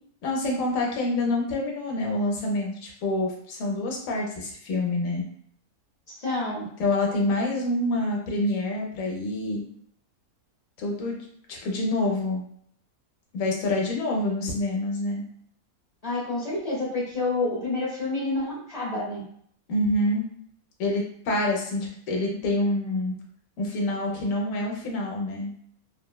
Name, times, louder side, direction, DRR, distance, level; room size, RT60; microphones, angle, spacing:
voice 1, 0.2-5.2 6.3-6.4 6.8-9.6 10.8-11.2 11.5-12.4 13.3-15.2 19.7-20.2 20.8-23.1 23.6-25.5, left 2 dB, 70° left, -1 dB, 1.1 m, -27 dB
voice 2, 6.1-6.6 16.0-19.2, left 2 dB, 40° left, -5 dB, 0.6 m, -28 dB
3.2 x 2.1 x 2.2 m, 0.65 s
omnidirectional pair, 1.5 m